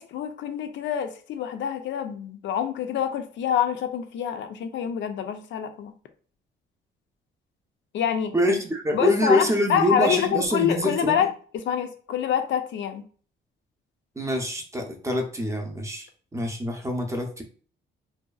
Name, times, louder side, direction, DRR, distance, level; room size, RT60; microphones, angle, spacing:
voice 1, 0.0-5.9 7.9-8.3 8.9-11.3 11.5-13.0, left 9 dB, 70° left, 8 dB, 0.5 m, -26 dB
voice 2, 8.3-11.3 14.2-17.4, equal, 15° right, 3 dB, 0.6 m, -25 dB
2.6 x 2.3 x 2.3 m, 0.42 s
cardioid pair, 90°, 20 cm